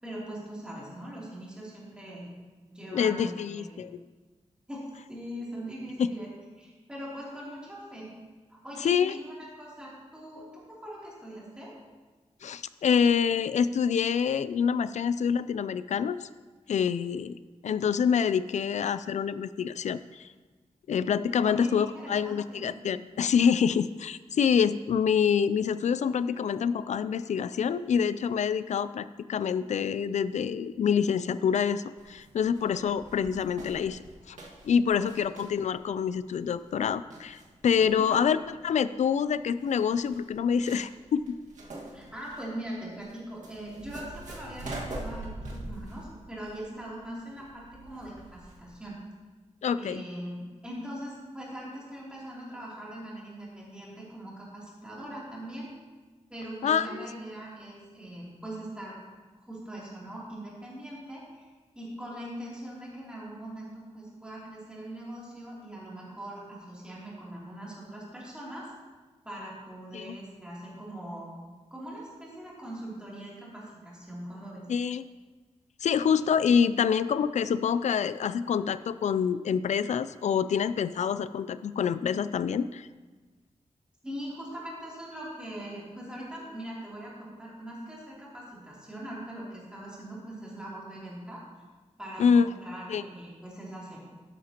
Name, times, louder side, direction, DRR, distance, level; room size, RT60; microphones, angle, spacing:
voice 1, 0.0-2.3 2.7-3.8 4.7-6.3 6.6-8.2 8.5-11.7 21.4-22.7 34.9-35.3 37.9-38.3 41.9-49.0 49.7-55.7 56.3-59.0 59.4-61.5 61.7-68.7 69.2-71.3 71.7-74.6 84.0-91.4 92.0-94.0, right 1 dB, 10° right, -7 dB, 3.0 m, -41 dB
voice 2, 2.9-4.0 6.0-6.1 8.8-9.2 12.4-16.3 16.7-17.4 17.6-20.3 20.9-34.4 34.6-38.4 38.6-41.4 49.6-50.0 56.6-57.1 69.9-70.2 74.7-75.1 75.8-82.9 92.2-92.6 92.9-93.0, left 7 dB, 75° left, 14 dB, 0.4 m, -26 dB
sound 1, 32.0-48.7, right 1 dB, 90° right, 1.8 m, -44 dB
12.5 x 10.0 x 2.9 m, 1.3 s
wide cardioid pair, 175°, 12 cm